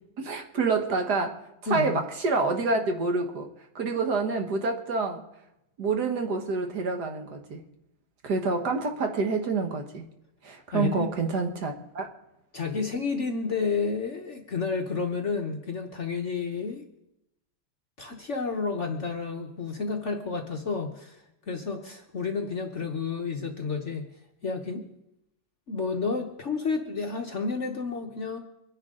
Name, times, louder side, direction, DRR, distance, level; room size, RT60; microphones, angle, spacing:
voice 1, 0.2-1.4 1.7-3.5 3.7-5.2 5.8-7.6 8.2-10.0 10.4-12.1, right 4 dB, 60° right, 5 dB, 1.7 m, -27 dB
voice 2, 1.7-2.0 10.7-11.1 12.5-16.8 18.0-24.0 24.4-24.8 25.7-28.4, left 4 dB, 45° left, 3 dB, 1.1 m, -30 dB
25.0 x 10.5 x 3.7 m, 0.87 s
omnidirectional pair, 2.2 m